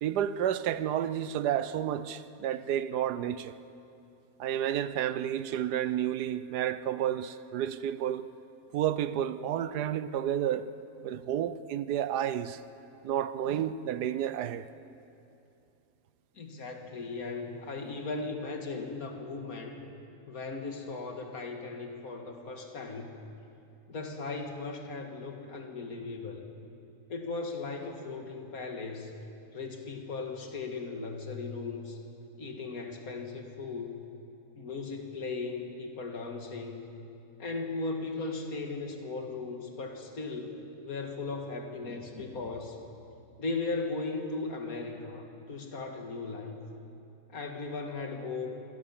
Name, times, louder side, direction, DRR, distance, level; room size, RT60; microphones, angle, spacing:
voice 1, 0.0-3.5 4.4-8.3 8.7-10.7 11.0-12.6 13.0-14.7, right 10 dB, 85° right, 1.3 m, -31 dB
voice 2, 16.4-19.8 20.3-23.1 23.9-26.5 27.1-29.1 29.5-32.0 32.4-34.0 34.6-36.9 37.4-42.8 43.4-46.6 47.3-48.5, left 3 dB, 60° left, 2.3 m, -37 dB
25.5 x 17.0 x 7.2 m
omnidirectional pair, 1.7 m